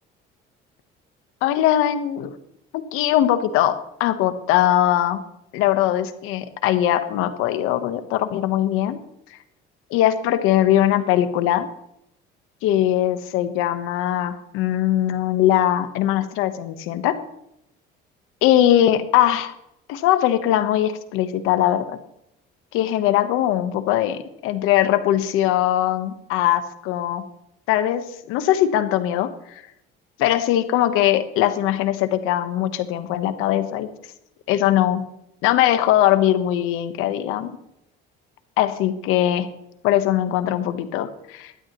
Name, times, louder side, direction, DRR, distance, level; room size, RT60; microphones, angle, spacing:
voice 1, 1.4-2.4 2.7-5.2 5.5-9.0 9.9-11.7 12.6-17.2 18.4-19.5 19.9-22.0 22.7-27.3 27.7-29.6 30.2-33.9 34.5-35.0 35.4-37.5 38.6-39.5 39.8-41.5, left 12 dB, 85° left, 10 dB, 1.1 m, -21 dB
16.5 x 12.0 x 3.1 m, 0.80 s
cardioid pair, 100°, 21 cm